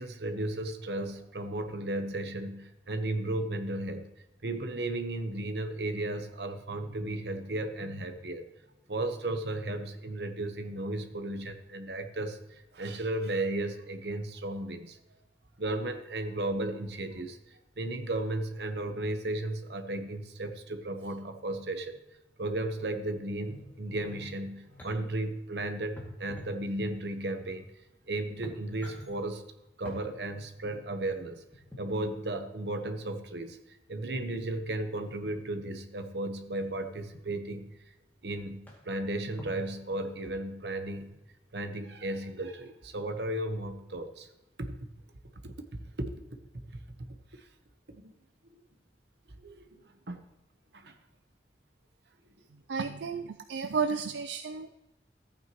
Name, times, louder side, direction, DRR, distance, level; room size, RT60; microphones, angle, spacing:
voice 1, 0.0-4.1 4.4-8.5 8.9-15.0 15.6-22.0 22.4-27.7 28.1-29.4 29.8-31.4 31.8-37.7 38.2-41.1 41.5-44.3 44.6-44.7 45.4-46.1 47.3-47.4 47.9-48.1 49.4-50.2 50.7-51.0, right 1 dB, 70° right, 7 dB, 1.1 m, -35 dB
sound 1, 23.4-24.9 26.0-27.2 27.9-28.0 28.3-29.1 29.8-30.0 31.5-32.0 34.1-34.6 35.2-35.6 36.6-37.2 37.9-38.0 38.3-38.4 38.7-39.0 39.4-40.3 40.9-41.1, left 1 dB, 10° left, 2.3 m, -48 dB
voice 2, 52.7-54.8, right 5 dB, 85° right, 7 dB, 0.4 m, -32 dB
14.0 x 8.9 x 3.1 m, 0.98 s
head